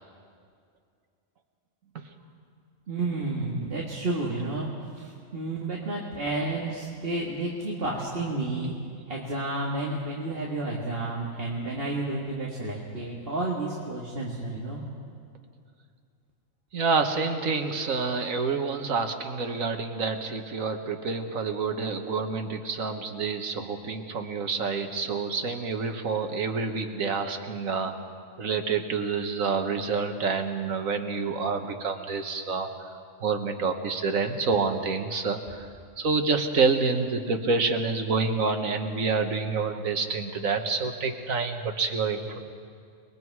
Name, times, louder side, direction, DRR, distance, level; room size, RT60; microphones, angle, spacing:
voice 1, 2.9-4.7 4.9-8.8 9.1-14.9, right 2 dB, 45° right, -4 dB, 2.2 m, -31 dB
voice 2, 16.7-28.0 28.4-32.7 33.2-35.7 36.0-42.4, right 4 dB, 90° right, 6 dB, 1.8 m, -28 dB
29.5 x 21.0 x 4.8 m, 2.2 s
omnidirectional pair, 1.4 m